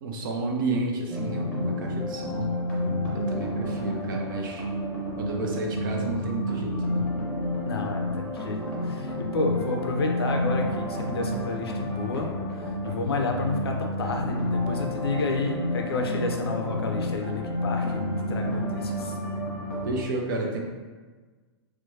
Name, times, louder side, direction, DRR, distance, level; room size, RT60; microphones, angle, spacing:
voice 1, 0.0-2.5 3.1-4.7 5.2-7.1 19.8-20.6, right 2 dB, 50° right, 1 dB, 0.5 m, -31 dB
sound 1, 1.1-20.0, left 1 dB, 10° left, 0.9 m, -30 dB
voice 2, 7.7-12.3 12.8-18.0 18.3-19.2, left 3 dB, 60° left, 2 dB, 0.5 m, -30 dB
4.3 x 2.2 x 2.6 m, 1.4 s
figure-of-eight pair, 105°, 14 cm